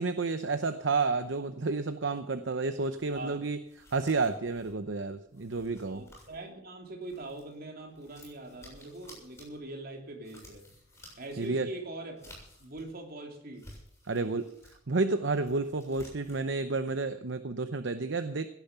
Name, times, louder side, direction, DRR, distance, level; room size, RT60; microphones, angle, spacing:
voice 1, 0.0-3.6 3.9-6.0 11.4-11.7 14.1-14.5 14.9-18.5, right 3 dB, 65° right, 10 dB, 0.8 m, -30 dB
sound 1, 3.0-7.6 7.9-13.0 13.4-14.8 15.2-16.5, left 1 dB, 15° left, 7.2 m, -55 dB
voice 2, 3.1-3.5 5.9-10.6 11.0-12.3 12.6-13.7, right 2 dB, 50° right, 2 dB, 3.1 m, -42 dB
17.0 x 10.5 x 5.9 m, 0.76 s
head